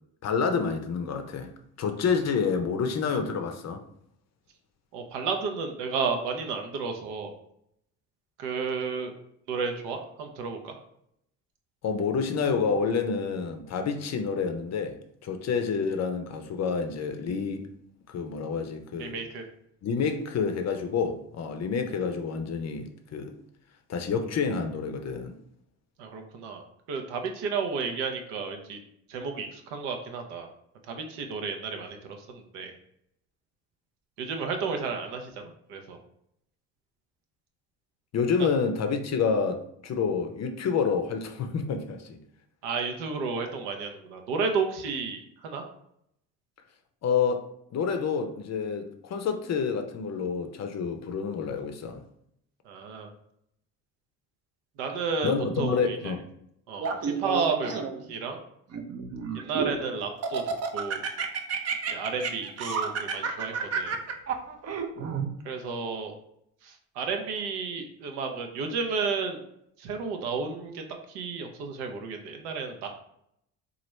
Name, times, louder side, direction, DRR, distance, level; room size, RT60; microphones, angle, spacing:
voice 1, 0.2-1.5 1.8-3.8 11.8-15.0 15.2-17.7 18.1-19.2 19.8-23.4 23.9-25.4 38.1-42.2 47.0-47.4 47.7-52.0 55.2-56.2, left 5 dB, 40° left, 0.5 m, -28 dB
voice 2, 4.9-7.3 8.4-9.1 9.5-10.8 19.0-19.4 26.0-26.6 26.9-28.8 29.1-30.5 30.9-32.0 32.3-32.7 34.2-36.0 38.4-38.5 42.6-45.6 52.7-53.1 54.8-56.1 56.7-57.7 58.1-58.4 59.3-60.4 60.7-61.0 61.9-64.0 65.4-66.1 66.6-69.4 69.8-72.9, right 5 dB, 75° right, 0.7 m, -32 dB
Laughter, 56.8-58.1 58.7-59.8 60.2-65.3, right 6 dB, 40° right, 0.5 m, -30 dB
2.9 x 2.5 x 3.0 m
supercardioid pair, 70°, 41 cm